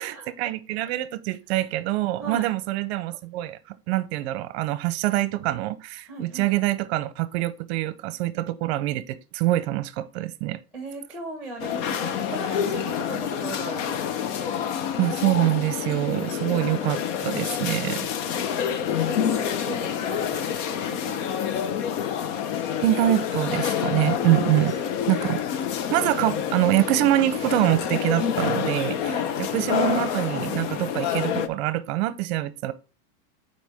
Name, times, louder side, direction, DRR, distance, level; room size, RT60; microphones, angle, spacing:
voice 1, 0.0-3.6 3.9-10.6 15.0-18.1 22.8-24.8 25.1-25.4 25.9-29.1 29.4-32.7, right 16 dB, 45° right, 0.7 m, -25 dB
voice 2, 2.2-2.5 6.0-6.6 10.7-14.0 16.4-17.7 18.2-21.6 24.5-25.2 29.1-29.3, right 2 dB, ahead, 1.4 m, -39 dB
sound 1, 11.6-31.5, left 8 dB, 55° left, 0.8 m, -27 dB
9.1 x 4.4 x 3.5 m
supercardioid pair, 170°, 43 cm